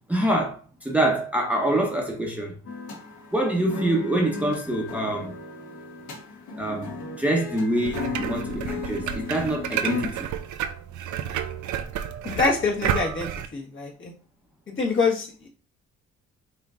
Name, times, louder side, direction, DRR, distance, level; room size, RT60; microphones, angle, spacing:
voice 1, 0.1-2.5 3.3-5.3 6.6-6.9 7.2-10.3, right 1 dB, 5° right, 1.0 m, -25 dB
sound 1, 2.6-10.0, left 4 dB, 70° left, 1.4 m, -35 dB
sound 2, 7.8-13.5, right 9 dB, 75° right, 0.6 m, -31 dB
voice 2, 12.2-14.1 14.7-15.5, left 4 dB, 40° left, 1.7 m, -25 dB
5.6 x 3.1 x 2.6 m
cardioid pair, 90°, 30 cm